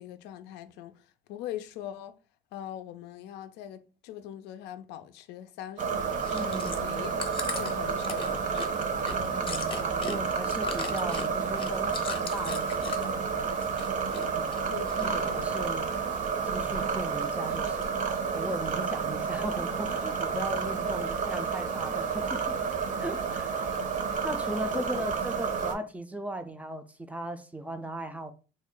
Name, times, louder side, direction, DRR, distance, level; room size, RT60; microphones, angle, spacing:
voice 1, 0.0-2.2 2.5-8.7 14.7-15.6 24.7-25.0, left 11 dB, 90° left, 0.4 m, -42 dB
sound 1, 5.8-25.7, right 5 dB, 50° right, 0.6 m, -30 dB
Chewing mastication, 6.1-13.2 13.5-14.3 14.5-15.4 15.9-16.0, left 5 dB, 35° left, 0.7 m, -38 dB
voice 2, 6.3-6.8 9.1-13.5 14.3-14.6 15.0-15.9 16.4-18.0 18.3-22.6 23.0-23.6 24.2-28.3, right 1 dB, 10° right, 0.3 m, -38 dB
3.2 x 2.1 x 3.7 m
cardioid pair, 110°, 17 cm